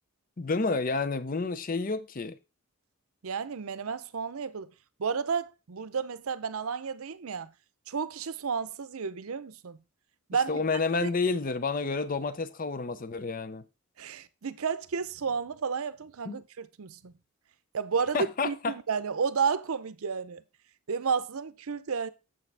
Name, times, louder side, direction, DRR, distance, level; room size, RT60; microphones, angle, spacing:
voice 1, 0.4-2.4 10.5-13.7 16.3-16.4 18.1-18.7, left 4 dB, 40° left, 0.5 m, -30 dB
voice 2, 3.2-4.7 5.0-7.5 7.9-9.8 10.3-10.6 11.0-11.1 14.0-17.1 17.7-18.2 18.4-20.4 20.9-22.1, right 6 dB, 75° right, 0.6 m, -32 dB
8.4 x 7.2 x 3.4 m
head